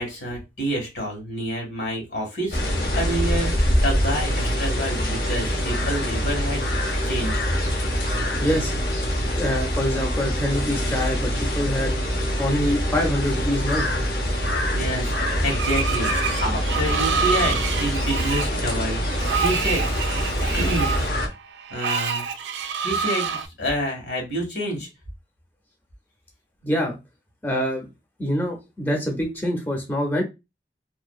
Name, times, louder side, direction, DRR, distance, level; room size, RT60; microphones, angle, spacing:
voice 1, 0.0-6.7 7.0-7.4 14.7-20.1 20.4-20.9 21.7-22.2 22.8-24.9, equal, 90° left, 0 dB, 1.4 m, -28 dB
sound 1, 2.5-21.3, equal, 55° left, 0.6 m, -24 dB
voice 2, 9.4-11.9 12.4-13.8 26.6-27.0 27.4-27.9 28.2-30.2, equal, 10° left, 1 dB, 0.4 m, -25 dB
Screech, 15.5-23.5, right 6 dB, 85° right, 0.3 m, -27 dB
2.6 x 2.2 x 2.3 m, 0.24 s
head